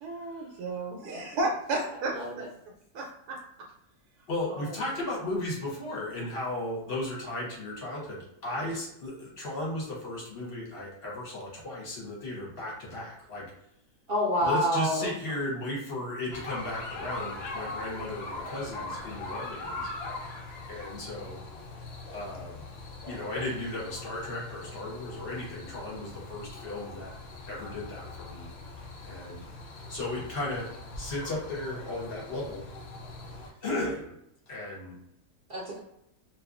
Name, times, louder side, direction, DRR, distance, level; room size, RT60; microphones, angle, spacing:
voice 1, 0.0-2.1 2.9-3.4 4.5-4.8 14.9-15.1, right 2 dB, 90° right, 0 dB, 1.1 m, -33 dB
voice 2, 2.1-2.5 14.1-15.0 35.5-35.8, equal, 55° right, -6 dB, 0.6 m, -27 dB
voice 3, 4.3-13.4 14.4-19.9 20.7-21.4 22.1-22.6 23.0-27.1 27.5-28.5 29.0-29.4 29.9-30.7 31.0-32.6 33.6-34.1 34.5-35.0, left 1 dB, 50° left, -4 dB, 0.8 m, -35 dB
sound 1, 16.3-33.5, left 2 dB, 80° left, 0.5 m, -41 dB
2.7 x 2.3 x 2.4 m, 0.78 s
omnidirectional pair, 1.6 m